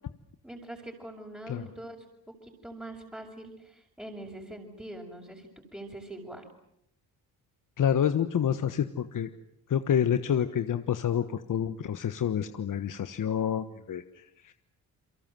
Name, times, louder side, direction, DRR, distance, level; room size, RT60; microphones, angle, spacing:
voice 1, 0.4-2.0 2.3-6.4, right 1 dB, 5° right, -1 dB, 5.7 m, -43 dB
voice 2, 7.8-9.3 9.7-14.5, left 9 dB, 55° left, 10 dB, 1.4 m, -28 dB
30.0 x 23.0 x 7.7 m, 0.75 s
cardioid pair, 80°, 38 cm